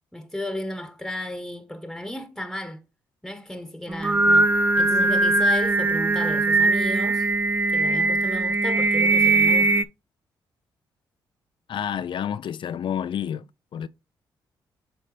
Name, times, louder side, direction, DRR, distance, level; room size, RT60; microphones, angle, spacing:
voice 1, 0.1-2.8 3.2-7.2 7.7-9.9, left 1 dB, ahead, 1.2 m, -34 dB
Singing, 3.9-9.8, right 2 dB, 20° right, 0.5 m, -20 dB
voice 2, 11.7-13.4 13.7-13.9, left 9 dB, 60° left, 0.4 m, -29 dB
7.7 x 3.9 x 3.3 m
supercardioid pair, 50°, 9 cm